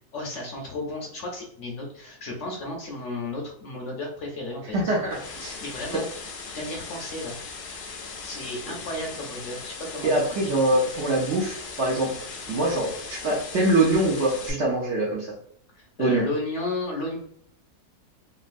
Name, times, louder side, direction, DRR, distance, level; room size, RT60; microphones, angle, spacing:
voice 1, 0.1-4.9 5.6-6.1 6.5-7.3 8.2-10.5 15.7-17.2, left 2 dB, 60° left, 0 dB, 0.9 m, -33 dB
sound 1, 4.7-14.5, left 4 dB, 75° left, 0.4 m, -39 dB
voice 2, 4.7-5.6 10.0-12.1 12.5-15.3 16.0-16.3, right 1 dB, 60° right, -2 dB, 0.8 m, -24 dB
3.0 x 2.5 x 2.5 m, 0.65 s
omnidirectional pair, 1.6 m